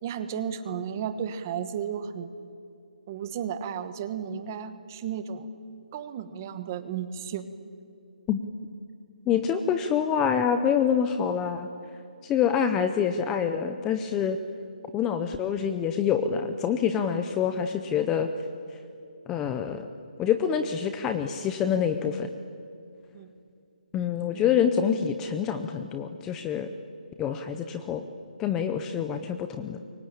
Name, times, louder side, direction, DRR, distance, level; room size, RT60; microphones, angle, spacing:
voice 1, 0.0-2.3 3.1-5.5 5.9-7.5 23.1-23.3 24.3-24.4, right 8 dB, 20° right, 11 dB, 1.2 m, -33 dB
voice 2, 9.3-11.7 12.2-14.4 14.9-18.3 19.3-19.8 20.2-22.3 23.9-26.7 27.2-28.0 28.4-29.8, left 8 dB, 10° left, 8 dB, 0.6 m, -26 dB
28.0 x 23.5 x 8.8 m, 2.5 s
hypercardioid pair, 175°, 5 cm